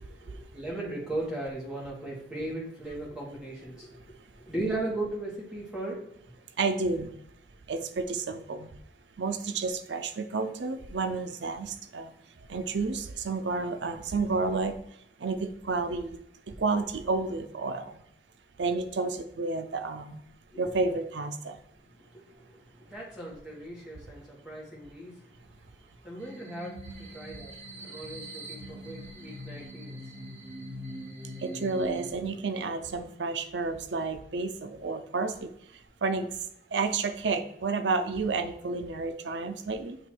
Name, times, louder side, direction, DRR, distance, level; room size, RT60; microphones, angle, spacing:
voice 1, 0.0-6.2 20.5-20.6 21.9-30.2, right 2 dB, 5° right, -5 dB, 1.5 m, -38 dB
voice 2, 6.6-7.1 7.7-8.7 9.2-12.1 12.5-14.7 15.2-16.2 16.6-18.0 18.6-20.2 20.6-21.6 31.4-35.5 36.0-36.3 36.7-40.0, right 4 dB, 85° right, 10 dB, 0.6 m, -30 dB
sound 1, 26.2-32.1, equal, 45° right, 1.5 m, -42 dB
7.8 x 3.0 x 4.6 m, 0.72 s
head